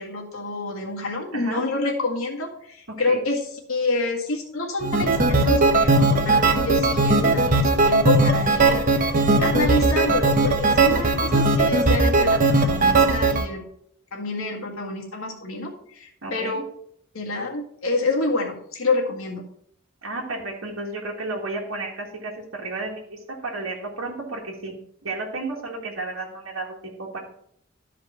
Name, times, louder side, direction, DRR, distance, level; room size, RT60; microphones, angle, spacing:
voice 1, 0.0-13.6 14.1-16.6 17.1-19.4, left 2 dB, 85° left, 0 dB, 1.9 m, -27 dB
voice 2, 1.3-1.6 3.0-3.2 16.2-16.6 20.0-24.7 25.0-27.2, right 2 dB, 85° right, -2 dB, 1.8 m, -32 dB
sound 1, 4.8-13.5, right 2 dB, 40° right, 0.8 m, -19 dB
12.5 x 5.1 x 4.4 m, 0.68 s
head